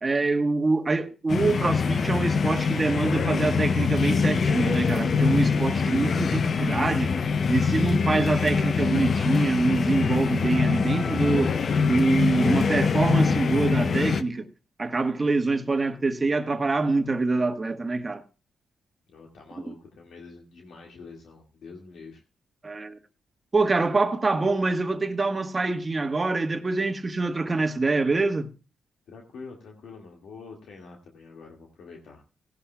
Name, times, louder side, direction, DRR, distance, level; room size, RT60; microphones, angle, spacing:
voice 1, 0.0-7.2 7.5-11.6 11.8-14.4 14.8-18.2 19.7-19.8 22.6-23.0 23.5-28.5, right 3 dB, 30° right, 1.3 m, -25 dB
sound 1, 1.3-14.2, left 5 dB, 55° left, 0.6 m, -24 dB
voice 2, 19.1-22.2 29.1-32.2, left 4 dB, 80° left, 1.9 m, -46 dB
17.0 x 11.5 x 2.2 m
cardioid pair, 70°, 0 cm